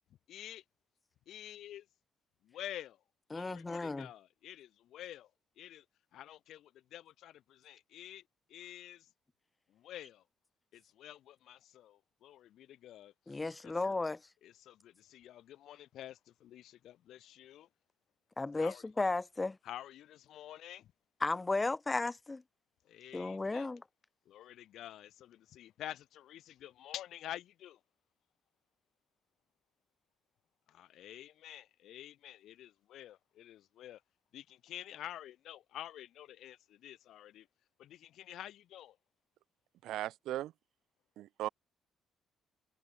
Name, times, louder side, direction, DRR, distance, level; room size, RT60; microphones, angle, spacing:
voice 1, 0.3-0.6 1.3-1.9 2.4-3.0 3.3-5.3 5.6-5.8 6.1-8.2 8.5-9.1 9.7-10.2 10.7-13.7 14.4-17.7 18.6-18.8 19.6-20.9 22.8-23.7 24.3-27.8 30.7-34.0 34.3-37.5 37.8-39.0, left 12 dB, 80° left, 0.9 m, -49 dB
voice 2, 3.3-4.1 13.3-14.2 18.4-19.6 21.2-22.4 23.1-23.8, left 3 dB, 20° left, 1.2 m, -34 dB
voice 3, 39.8-40.5 41.2-41.5, right 14 dB, 85° right, 1.6 m, -37 dB
cardioid pair, 90°, 0 cm